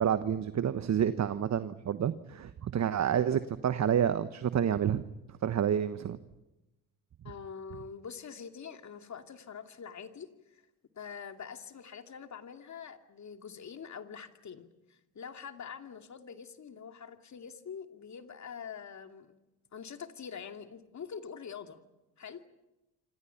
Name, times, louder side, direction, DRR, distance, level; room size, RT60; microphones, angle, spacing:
voice 1, 0.0-5.0 5.4-6.2, right 9 dB, 40° right, 12 dB, 1.2 m, -29 dB
voice 2, 7.2-10.6 10.9-19.3 19.7-21.8 22.2-22.4, left 6 dB, 45° left, 6 dB, 2.6 m, -45 dB
28.5 x 25.5 x 5.9 m, 1.0 s
hypercardioid pair, 60°, 41 cm